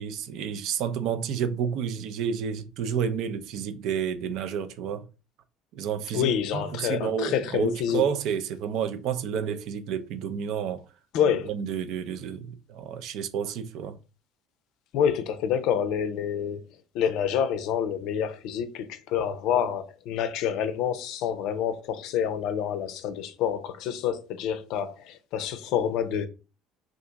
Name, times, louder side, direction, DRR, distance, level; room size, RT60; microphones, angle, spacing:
voice 1, 0.0-5.1 5.7-10.8 11.5-14.0, right 7 dB, 60° right, 0.4 m, -30 dB
voice 2, 6.1-8.0 11.1-11.5 14.9-16.6 16.9-26.3, left 8 dB, 60° left, 0.4 m, -27 dB
2.7 x 2.5 x 3.5 m
hypercardioid pair, 60°, 0 cm